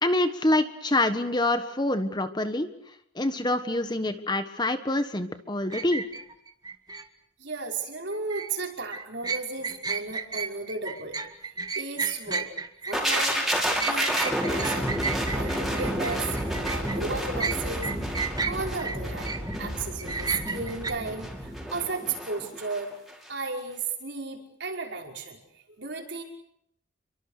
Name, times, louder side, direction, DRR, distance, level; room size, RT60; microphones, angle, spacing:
voice 1, 0.0-2.7 3.1-6.0, left 1 dB, 20° left, 9 dB, 1.5 m, -26 dB
sound 1, 5.7-7.0 8.1-8.5 8.9-17.0 17.4-19.6 20.0-20.9, right 4 dB, 20° right, 1.7 m, -33 dB
voice 2, 7.4-11.1 11.8-12.5 12.9-13.4 13.8-14.9 15.2-17.9 18.5-19.3 19.6-22.9 23.3-25.4 25.8-26.2, right 4 dB, 60° right, 2 dB, 5.6 m, -34 dB
sound 2, 12.9-22.8 23.1-23.3, equal, ahead, 6.4 m, -30 dB
29.5 x 24.0 x 6.7 m, 0.74 s
head